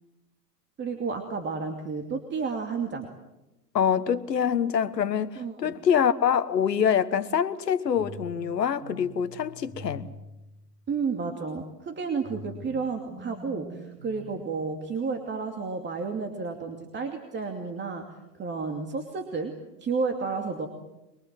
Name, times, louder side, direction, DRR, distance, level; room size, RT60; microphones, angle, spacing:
voice 1, 0.8-3.1 5.4-5.7 10.9-18.1 18.3-19.5 19.8-20.7, right 4 dB, 20° right, 2.7 m, -31 dB
voice 2, 3.7-10.1, left 8 dB, 90° left, 1.4 m, -25 dB
sound 1, 7.9-11.1 12.2-15.2, right 1 dB, 40° right, 6.7 m, -46 dB
24.0 x 23.5 x 7.6 m
hypercardioid pair, 110°, 48 cm